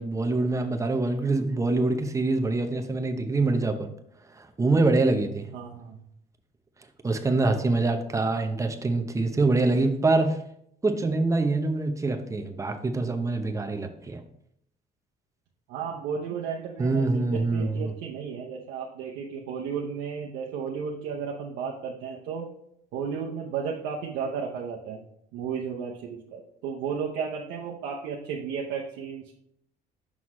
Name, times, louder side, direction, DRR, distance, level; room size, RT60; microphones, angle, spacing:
voice 1, 0.0-3.9 4.3-5.5 7.0-10.4 10.8-14.2 16.8-17.9, right 3 dB, 20° right, 5 dB, 0.8 m, -25 dB
voice 2, 5.5-6.0 15.7-22.5 22.9-25.0 25.3-29.3, right 6 dB, 90° right, -1 dB, 0.8 m, -33 dB
6.2 x 5.6 x 3.1 m, 0.73 s
cardioid pair, 110°, 17 cm